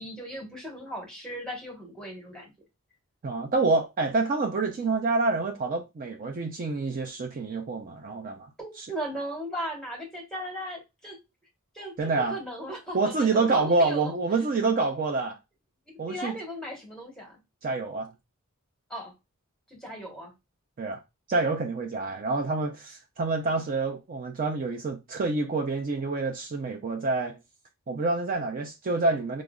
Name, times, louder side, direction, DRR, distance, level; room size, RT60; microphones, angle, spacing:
voice 1, 0.0-2.5 8.6-11.2 11.7-14.1 15.9-17.4 18.9-19.1 19.7-20.3, equal, 5° left, 1.1 m, -37 dB
voice 2, 3.2-8.5 8.8-8.9 12.0-12.4 12.9-15.3 16.0-16.4 17.6-18.1 20.8-21.0 21.3-27.4 27.9-29.4, right 3 dB, 40° right, 0.4 m, -27 dB
4.9 x 2.1 x 2.3 m
head